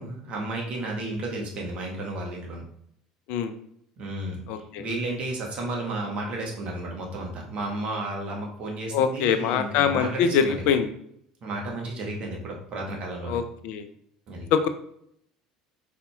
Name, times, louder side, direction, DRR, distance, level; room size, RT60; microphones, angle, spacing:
voice 1, 0.0-2.6 4.0-10.7 11.4-13.4 14.3-14.4, right 2 dB, 45° right, 0 dB, 1.3 m, -33 dB
voice 2, 4.5-4.8 8.9-10.9 13.2-13.9 14.5-14.7, left 7 dB, 65° left, 9 dB, 0.4 m, -24 dB
4.9 x 4.1 x 2.4 m, 0.70 s
hypercardioid pair, 65°, 3 cm